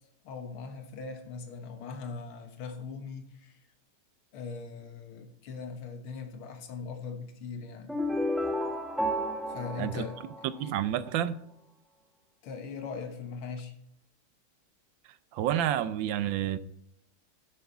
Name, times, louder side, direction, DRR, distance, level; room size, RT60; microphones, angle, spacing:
voice 1, 0.2-3.6 4.3-7.9 9.4-10.2 10.6-10.8 12.4-13.7, left 5 dB, 80° left, 2.2 m, -40 dB
sound 1, 7.9-10.9, equal, ahead, 0.4 m, -32 dB
voice 2, 10.6-11.4 15.3-16.6, right 11 dB, 75° right, 1.2 m, -29 dB
10.5 x 7.6 x 4.1 m
omnidirectional pair, 2.3 m